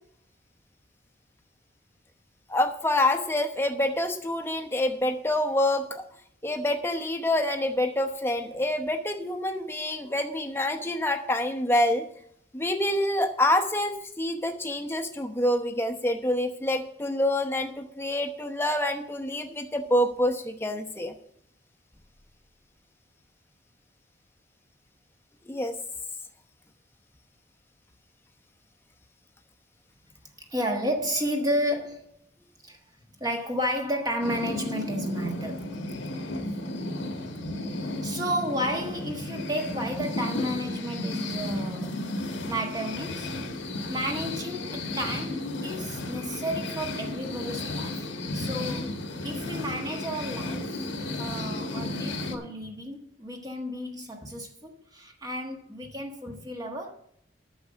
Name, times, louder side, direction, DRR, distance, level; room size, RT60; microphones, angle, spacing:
voice 1, 2.5-6.0 6.4-12.1 12.5-21.1 25.5-25.8, left 1 dB, 15° left, 0.9 m, -27 dB
voice 2, 30.5-32.1 32.6-32.8 33.2-35.8 38.0-43.3 43.9-50.7 51.2-56.9, equal, 20° right, 1.3 m, -32 dB
sound 1, 34.2-52.4, left 2 dB, 85° left, 1.3 m, -33 dB
9.4 x 6.9 x 6.3 m
head